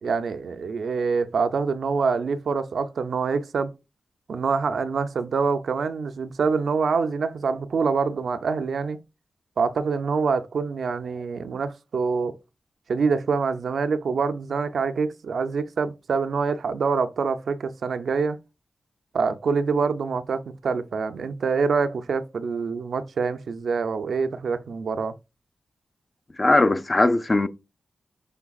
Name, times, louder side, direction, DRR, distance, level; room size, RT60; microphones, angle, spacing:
voice 1, 0.0-3.7 4.3-9.0 9.6-12.3 12.9-18.4 19.1-25.1, right 5 dB, 80° right, 0.4 m, -25 dB
voice 2, 26.4-27.5, left 2 dB, 35° left, 0.4 m, -19 dB
5.9 x 3.2 x 2.3 m
cardioid pair, 70°, 0 cm